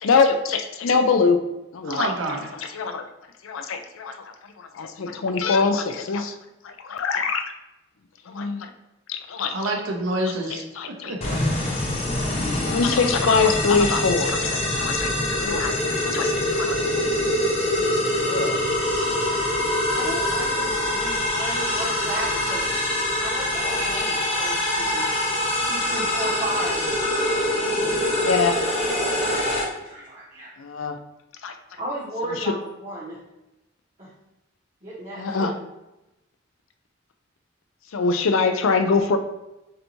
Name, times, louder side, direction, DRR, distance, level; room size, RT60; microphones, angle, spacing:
voice 1, 0.0-1.4 1.7-2.1 2.6-3.0 3.4-4.2 4.6-6.3 6.6-7.5 8.3-8.7 9.1-9.6 10.8-10.9 12.6-16.8 17.2-17.4 17.8-17.9 18.2-18.6 28.1-28.6 30.6-31.0 31.4-31.5 35.2-35.5 37.9-39.2, left 4 dB, 85° left, 8 dB, 0.5 m, -23 dB
voice 2, 1.8-2.7 9.5-10.6 11.1-11.2 12.2-12.3, right 2 dB, 85° right, 1 dB, 0.9 m, -27 dB
sound 1, 11.2-29.6, left 1 dB, 30° left, 0.7 m, -24 dB
voice 3, 19.9-22.8 23.2-25.1 25.7-28.3 29.0-30.5 31.8-32.5 32.8-33.2 34.0-34.1 34.8-35.5, right 1 dB, 35° right, -10 dB, 1.3 m, -34 dB
6.7 x 2.7 x 3.0 m, 0.97 s
head